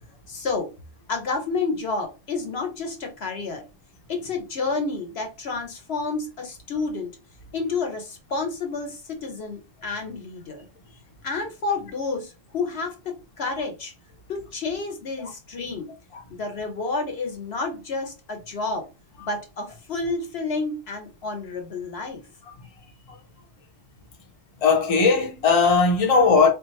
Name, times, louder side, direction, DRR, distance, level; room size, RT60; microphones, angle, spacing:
voice 1, 0.3-0.7 1.1-3.6 4.1-7.1 7.5-10.7 11.2-13.9 14.3-15.9 16.3-18.9 19.2-22.2, left 3 dB, 60° left, 1.0 m, -30 dB
voice 2, 24.6-26.5, left 4 dB, 35° left, 0.7 m, -18 dB
3.5 x 2.4 x 3.1 m
omnidirectional pair, 1.3 m